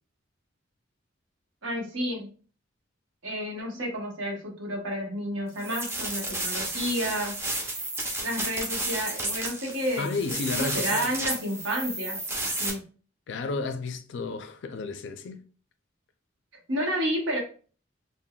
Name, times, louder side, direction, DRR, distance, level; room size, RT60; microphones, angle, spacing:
voice 1, 1.6-2.3 3.2-7.4 8.2-10.1 10.5-12.2 12.6-12.8 16.7-17.4, equal, 85° right, 1.0 m, -30 dB
sound 1, 5.6-12.7, right 2 dB, 15° right, 0.5 m, -32 dB
voice 2, 10.0-11.1 13.3-15.4, left 4 dB, 65° left, 0.4 m, -32 dB
3.7 x 2.0 x 2.2 m
head